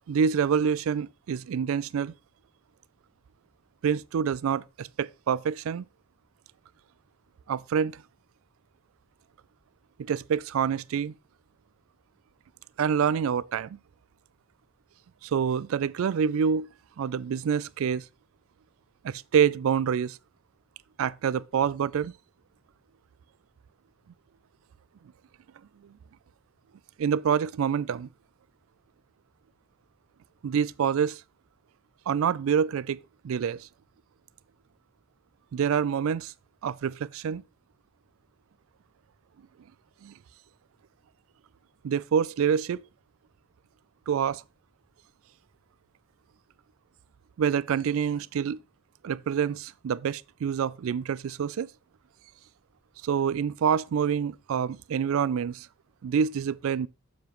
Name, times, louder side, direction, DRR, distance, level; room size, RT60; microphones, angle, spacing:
voice 1, 0.1-2.1 3.8-5.8 7.5-8.0 10.0-11.1 12.8-13.8 15.2-16.7 17.0-18.0 19.0-20.2 21.0-22.1 27.0-28.1 30.4-31.2 32.1-33.0 33.2-33.7 35.5-36.3 36.6-37.4 40.0-40.1 41.8-42.8 44.1-44.4 47.4-48.6 49.0-51.7 53.0-55.7 56.0-56.9, right 7 dB, 70° right, 0.3 m, -26 dB
7.2 x 7.0 x 3.0 m
head